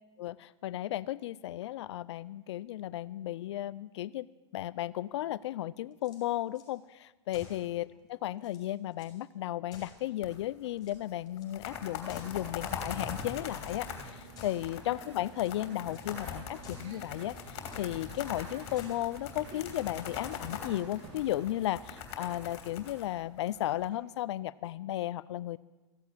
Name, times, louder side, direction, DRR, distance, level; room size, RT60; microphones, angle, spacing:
voice 1, 0.2-4.3 4.5-25.6, left 14 dB, 65° left, 18 dB, 0.4 m, -35 dB
sound 1, 5.9-6.7 7.3-7.7 8.1-8.2 8.4-9.2 9.7-10.4 10.7-11.5 12.1-12.6 13.1-13.9 14.3-14.7 15.2-15.6 15.9-16.1 16.6-17.0 17.6-18.4 18.7-19.1, left 4 dB, 25° left, 5.8 m, -54 dB
sound 2, 10.2-10.7 10.9-11.0 11.4-23.9, left 6 dB, 45° left, 3.1 m, -42 dB
sound 3, 13.6-22.0, right 5 dB, 45° right, 2.6 m, -52 dB
15.0 x 8.3 x 9.8 m, 1.2 s
hypercardioid pair, 120°, 15 cm